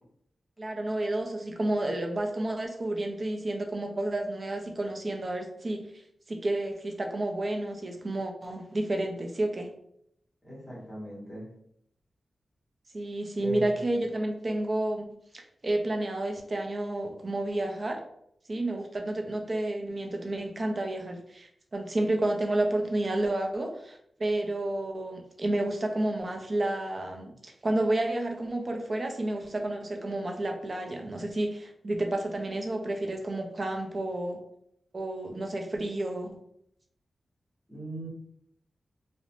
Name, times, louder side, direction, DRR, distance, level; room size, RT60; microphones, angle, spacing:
voice 1, 0.6-5.9 6.3-9.7 12.9-15.1 15.3-18.0 18.5-34.4 34.9-36.4, right 1 dB, 40° right, 3 dB, 0.4 m, -30 dB
voice 2, 10.4-11.5 13.4-13.9 37.7-38.1, right 1 dB, 15° left, -5 dB, 1.1 m, -39 dB
2.5 x 2.1 x 2.9 m, 0.73 s
wide cardioid pair, 100°, 0 cm